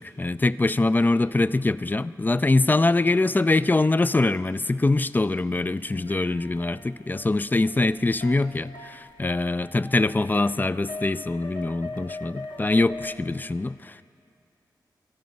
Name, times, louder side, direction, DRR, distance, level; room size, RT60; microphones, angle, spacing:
voice 1, 0.0-14.0, left 2 dB, 25° left, 16 dB, 0.3 m, -23 dB
sound 1, 5.8-13.2, left 2 dB, 85° left, 1.1 m, -41 dB
24.0 x 11.0 x 5.4 m, 2.6 s
wide cardioid pair, 65°, 8 cm